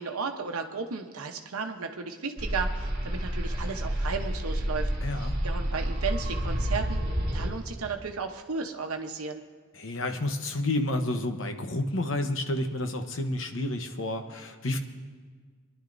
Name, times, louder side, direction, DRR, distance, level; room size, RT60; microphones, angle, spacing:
voice 1, 0.0-7.0 7.3-9.4, right 5 dB, 90° right, 4 dB, 0.9 m, -34 dB
sound 1, 2.4-7.5, equal, 45° right, 1.9 m, -29 dB
voice 2, 5.0-5.3 9.8-14.8, left 1 dB, 65° left, 6 dB, 1.0 m, -30 dB
24.0 x 11.0 x 2.6 m, 1.6 s
head